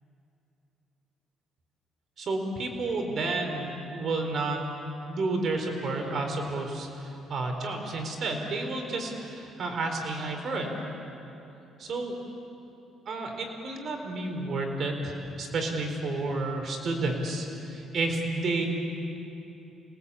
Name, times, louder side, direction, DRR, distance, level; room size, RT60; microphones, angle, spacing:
voice 1, 2.2-4.6 5.1-10.7 11.8-12.1 13.1-18.7, right 2 dB, 55° right, 3 dB, 4.5 m, -31 dB
29.5 x 18.5 x 8.7 m, 3.0 s
cardioid pair, 100°, 0 cm